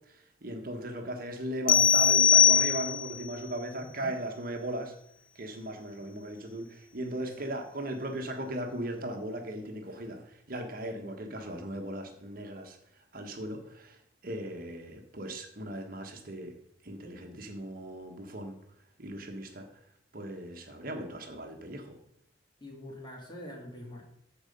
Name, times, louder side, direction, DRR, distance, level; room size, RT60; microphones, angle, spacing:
voice 1, 0.0-4.9 5.3-12.8 13.1-16.5 16.8-18.6 19.0-19.7 20.1-22.0, right 1 dB, 50° right, 3 dB, 1.4 m, -38 dB
sound 1, 1.7-3.2, left 8 dB, 50° left, 0.4 m, -21 dB
voice 2, 3.8-4.1 7.2-7.5 22.6-24.0, left 1 dB, 25° left, 0 dB, 2.5 m, -45 dB
14.5 x 4.9 x 5.4 m, 0.72 s
head